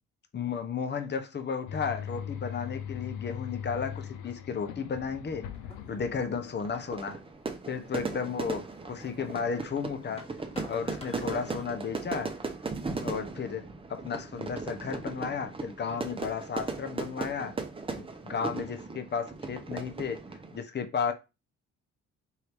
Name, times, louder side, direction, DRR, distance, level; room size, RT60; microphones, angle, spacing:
voice 1, 0.3-5.5 5.9-7.2 7.7-10.3 10.7-12.3 13.0-13.6 13.9-17.5 18.0-20.2 20.5-21.1, left 6 dB, 35° left, 0.8 m, -33 dB
sound 1, 1.7-7.0, left 8 dB, 90° left, 0.6 m, -40 dB
sound 2, 5.5-11.8, left 2 dB, 20° left, 1.3 m, -51 dB
Fire / Fireworks, 6.6-20.6, right 3 dB, 20° right, 0.8 m, -37 dB
4.7 x 2.7 x 3.4 m
cardioid pair, 90°, 30 cm